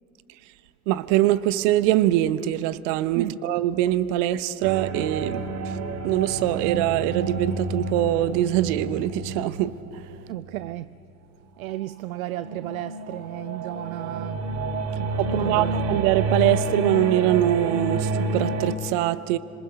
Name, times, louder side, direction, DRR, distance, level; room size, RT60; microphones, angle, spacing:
voice 1, 0.9-5.7 6.0-9.7 15.2-19.4, right 14 dB, 55° right, 0.9 m, -23 dB
sound 1, 4.6-10.9 11.6-18.7, right 2 dB, 35° right, 1.8 m, -29 dB
voice 2, 10.3-11.0 11.6-14.5 15.0-16.0, right 15 dB, 70° right, 0.5 m, -34 dB
27.0 x 26.0 x 5.1 m
figure-of-eight pair, 70°, 43 cm